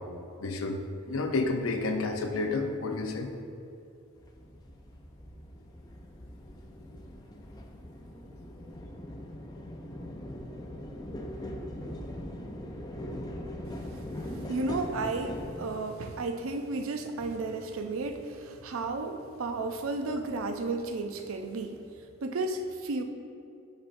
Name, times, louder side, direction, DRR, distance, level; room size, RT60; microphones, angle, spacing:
voice 1, 0.4-3.3, left 3 dB, 85° left, 4 dB, 0.6 m, -30 dB
sound 1, 4.2-15.7, left 1 dB, 20° left, 0.4 m, -41 dB
voice 2, 14.5-21.8 22.2-23.0, right 3 dB, 80° right, 6 dB, 0.5 m, -33 dB
10.0 x 4.3 x 2.6 m, 2.6 s
head